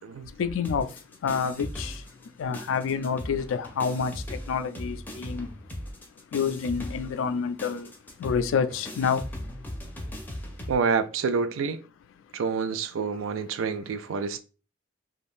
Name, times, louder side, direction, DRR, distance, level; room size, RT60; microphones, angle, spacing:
voice 1, 0.1-5.7 6.3-9.4 10.0-10.1 10.4-10.5, left 6 dB, 80° left, 0.3 m, -29 dB
sound 1, 0.6-2.3 2.5-10.8, left 1 dB, 10° left, 0.5 m, -38 dB
voice 2, 10.7-11.8 12.3-14.4, right 5 dB, 85° right, 0.4 m, -28 dB
2.5 x 2.3 x 3.4 m
head